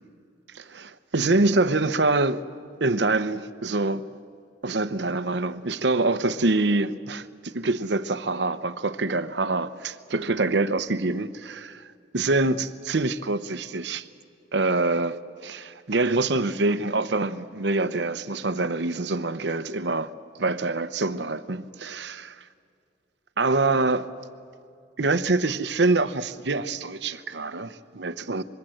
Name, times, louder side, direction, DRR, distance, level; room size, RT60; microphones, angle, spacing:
voice 1, 0.5-2.4 2.8-4.2 4.6-11.9 12.1-14.1 14.5-20.1 20.4-22.4 23.4-24.1 25.0-28.4, right 3 dB, 70° right, 0.9 m, -25 dB
25.0 x 22.0 x 7.8 m
head